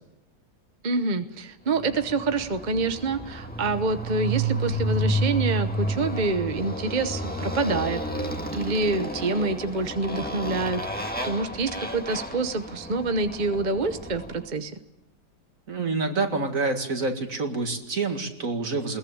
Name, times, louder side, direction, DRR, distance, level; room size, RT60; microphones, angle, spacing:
voice 1, 0.8-14.7, right 3 dB, 35° right, 8 dB, 0.9 m, -27 dB
Motorcycle, 1.7-14.5, right 1 dB, 5° left, 1.6 m, -31 dB
voice 2, 15.7-19.0, right 3 dB, 50° right, 5 dB, 2.5 m, -27 dB
21.5 x 18.5 x 8.7 m, 0.94 s
omnidirectional pair, 1.8 m